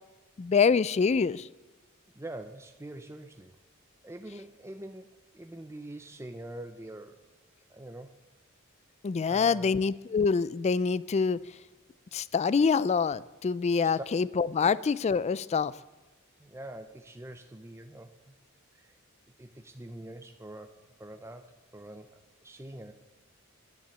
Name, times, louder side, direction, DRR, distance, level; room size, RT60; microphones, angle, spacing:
voice 1, 0.4-1.5 9.0-11.4 12.1-15.7, left 5 dB, 30° left, 19 dB, 0.3 m, -26 dB
voice 2, 2.1-3.6 4.0-7.2 7.7-8.2 9.3-9.7 13.8-14.0 14.6-14.7 16.4-18.4 18.7-19.0 19.4-22.9, right 1 dB, 15° right, 7 dB, 0.6 m, -44 dB
10.5 x 10.5 x 8.1 m, 1.2 s
head